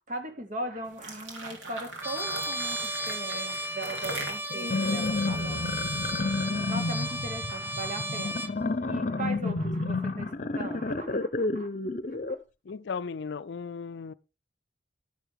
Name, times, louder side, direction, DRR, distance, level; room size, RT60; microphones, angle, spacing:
voice 1, 0.1-8.5 8.8-11.7, right 1 dB, 45° right, 2.5 m, -39 dB
sound 1, 0.8-6.1, right 2 dB, 80° right, 3.9 m, -41 dB
Trumpet, 2.0-8.6, right 1 dB, 10° right, 0.9 m, -34 dB
sound 2, 4.5-12.4, left 3 dB, 45° left, 0.9 m, -30 dB
voice 2, 12.7-14.1, left 5 dB, 65° left, 0.5 m, -36 dB
12.0 x 11.5 x 3.6 m
head